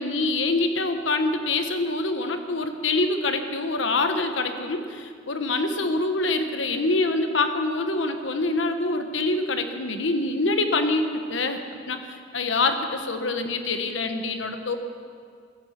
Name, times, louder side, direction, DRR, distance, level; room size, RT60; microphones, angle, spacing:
voice 1, 0.0-11.6 11.9-14.8, left 2 dB, 85° left, 7 dB, 1.3 m, -25 dB
16.0 x 13.5 x 5.9 m, 2.2 s
head